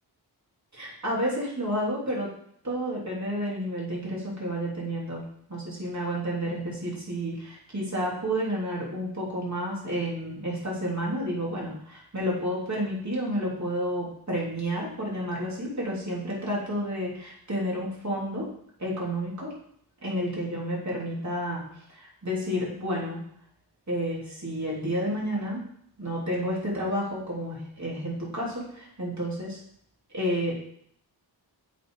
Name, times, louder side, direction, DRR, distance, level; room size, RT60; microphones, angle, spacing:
voice 1, 0.7-2.3 2.6-5.2 5.5-18.5 18.8-19.5 20.0-21.6 21.9-23.2 23.9-25.6 26.0-29.6 30.1-30.6, equal, 40° right, -4 dB, 3.3 m, -30 dB
8.1 x 4.4 x 4.9 m, 0.68 s
cardioid pair, 60°, 43 cm